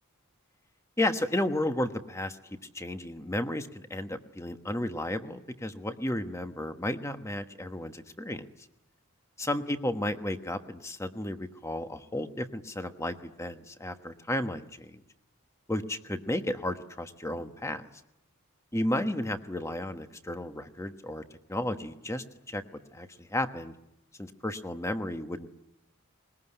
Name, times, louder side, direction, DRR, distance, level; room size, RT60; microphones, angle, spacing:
voice 1, 1.0-2.4 2.7-8.4 9.4-15.0 15.7-17.8 18.7-21.2 21.5-22.6 22.9-23.7 24.2-25.5, left 1 dB, 15° left, 8 dB, 1.2 m, -33 dB
21.0 x 21.0 x 9.9 m, 0.84 s
head